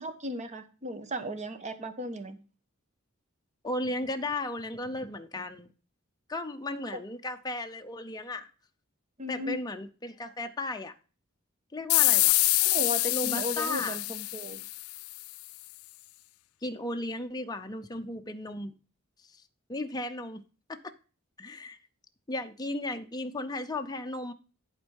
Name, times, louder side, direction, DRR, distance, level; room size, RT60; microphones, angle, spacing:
voice 1, 0.0-2.4 6.9-7.0 9.2-9.6 12.6-14.6, equal, 35° right, 1.1 m, -36 dB
voice 2, 3.6-5.7 6.3-8.5 9.3-10.9 11.7-12.4 13.1-14.0 16.6-18.7 19.7-20.4 20.7-20.9 21.4-21.8 22.3-24.3, left 2 dB, 20° left, 0.6 m, -35 dB
sound 1, 11.9-15.2, left 22 dB, 75° left, 0.3 m, -26 dB
11.0 x 4.4 x 5.3 m
head